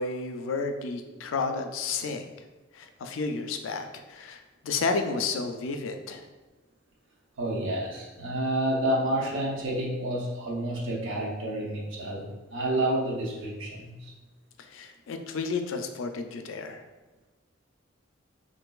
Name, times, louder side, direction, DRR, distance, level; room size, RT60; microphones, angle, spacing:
voice 1, 0.0-2.3 2.7-6.3 14.6-16.8, left 4 dB, 80° left, 6 dB, 0.3 m, -32 dB
voice 2, 7.4-14.1, right 1 dB, 75° right, -2 dB, 0.7 m, -29 dB
3.6 x 2.5 x 2.3 m, 1.2 s
head